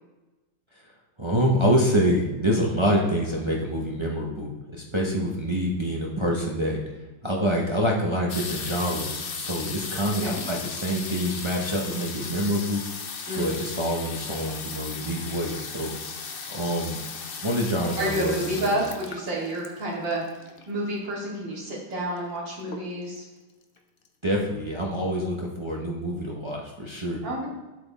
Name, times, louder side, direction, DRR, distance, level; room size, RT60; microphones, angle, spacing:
voice 1, 1.2-6.8 7.2-12.8 13.3-15.9 16.5-17.0 17.4-18.8 24.2-27.2, equal, 25° right, -2 dB, 0.6 m, -26 dB
sound 1, 8.3-20.8 21.7-21.8 21.9-22.3 22.7-23.2 23.8-23.9 24.1-24.2, left 5 dB, 65° left, 0.5 m, -36 dB
voice 2, 13.3-13.6 18.0-20.2 20.7-23.2 27.2-27.5, right 1 dB, 75° right, -5 dB, 3.1 m, -29 dB
7.7 x 7.7 x 4.1 m, 1.1 s
omnidirectional pair, 2.0 m